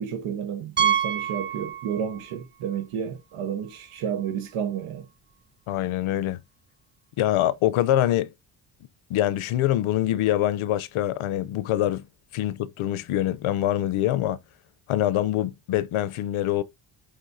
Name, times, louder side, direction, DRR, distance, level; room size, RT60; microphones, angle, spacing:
voice 1, 0.0-5.1, right 8 dB, 85° right, 1.3 m, -31 dB
Piano, 0.8-2.4 2.6-2.8 3.4-3.5 3.7-3.8 5.9-6.0, right 9 dB, 25° right, 0.4 m, -27 dB
voice 2, 5.7-6.4 7.2-8.3 9.1-12.0 12.3-14.4 14.9-16.6, left 13 dB, 80° left, 0.8 m, -24 dB
8.8 x 4.1 x 2.7 m
cardioid pair, 140°, 48 cm